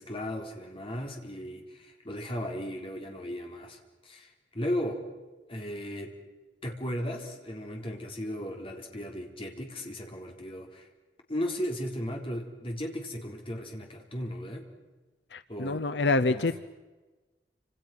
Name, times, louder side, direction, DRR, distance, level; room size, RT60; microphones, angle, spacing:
voice 1, 0.0-3.8 4.0-5.0 5.5-6.2 6.6-10.9 11.3-14.6 15.5-15.9 16.3-16.6, equal, 30° left, 2 dB, 4.1 m, -36 dB
voice 2, 15.3-16.6, left 3 dB, 75° left, 12 dB, 0.8 m, -27 dB
29.5 x 27.0 x 6.1 m, 1.2 s
head